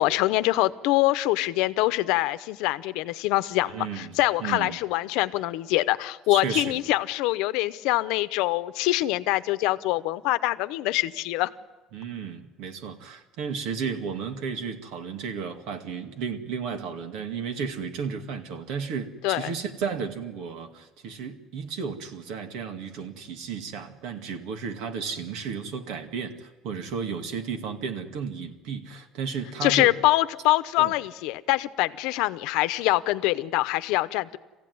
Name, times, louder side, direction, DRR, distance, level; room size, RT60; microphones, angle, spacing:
voice 1, 0.0-11.5 19.2-19.5 29.6-34.4, left 18 dB, 85° left, 13 dB, 0.8 m, -24 dB
voice 2, 3.7-4.8 6.3-6.8 11.9-29.9 30.8-30.9, right 6 dB, 75° right, 6 dB, 2.2 m, -33 dB
24.5 x 15.5 x 9.5 m, 1.3 s
cardioid pair, 165°, 0 cm